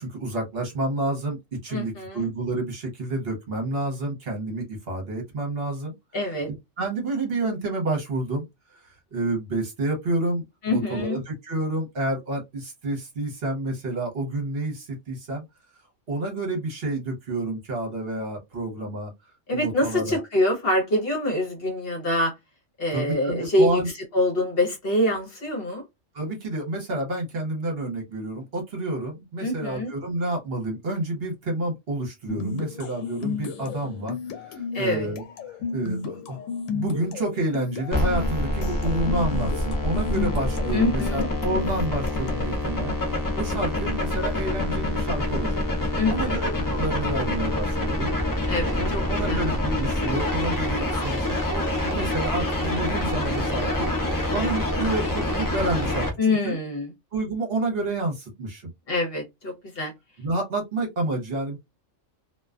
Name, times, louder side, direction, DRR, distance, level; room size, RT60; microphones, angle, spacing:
voice 1, 0.0-5.9 6.5-8.4 8.7-15.4 16.1-19.1 19.5-20.2 22.9-23.9 26.1-36.4 36.7-45.6 46.1-48.1 48.8-53.9 54.3-56.6 57.1-58.7 60.2-61.6, right 2 dB, 55° right, 1.0 m, -29 dB
voice 2, 1.7-2.3 6.1-6.5 10.6-11.2 19.5-22.3 22.8-23.8 24.1-25.8 29.4-29.9 34.7-35.1 40.7-41.3 45.9-46.5 48.4-49.0 49.3-49.4 56.2-56.9 58.9-59.9, left 1 dB, 50° left, 1.0 m, -25 dB
sound 1, 32.3-42.5, left 5 dB, 85° left, 0.9 m, -33 dB
sound 2, 37.9-56.1, left 1 dB, 30° left, 0.4 m, -26 dB
2.4 x 2.2 x 2.3 m
omnidirectional pair, 1.3 m